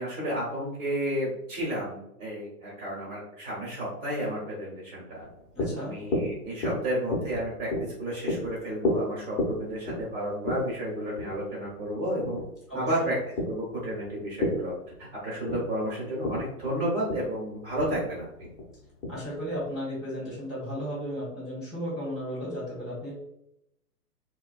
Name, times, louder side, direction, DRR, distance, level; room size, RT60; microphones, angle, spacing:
voice 1, 0.0-5.2 5.8-7.7 8.0-12.4 12.7-13.2 13.5-14.7 15.2-18.5, right 1 dB, 35° right, -6 dB, 1.1 m, -32 dB
sound 1, 5.2-19.8, left 1 dB, 35° left, 0.8 m, -34 dB
voice 2, 5.5-5.9 12.7-13.1 19.1-23.2, equal, ahead, -14 dB, 0.7 m, -34 dB
2.5 x 2.3 x 2.4 m, 0.80 s
hypercardioid pair, 140°, 48 cm